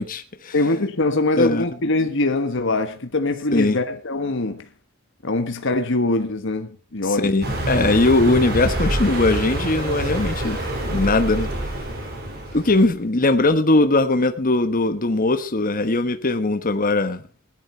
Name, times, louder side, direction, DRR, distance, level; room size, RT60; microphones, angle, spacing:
voice 1, 0.0-0.5 1.4-1.6 3.5-3.8 7.1-10.6 10.9-11.5 12.5-17.2, left 2 dB, 40° left, 1.1 m, -20 dB
voice 2, 0.5-4.6 5.2-7.3, left 2 dB, 60° left, 1.4 m, -23 dB
Car passing by, 7.4-12.9, right 1 dB, 50° right, 5.0 m, -26 dB
17.0 x 11.5 x 4.4 m
head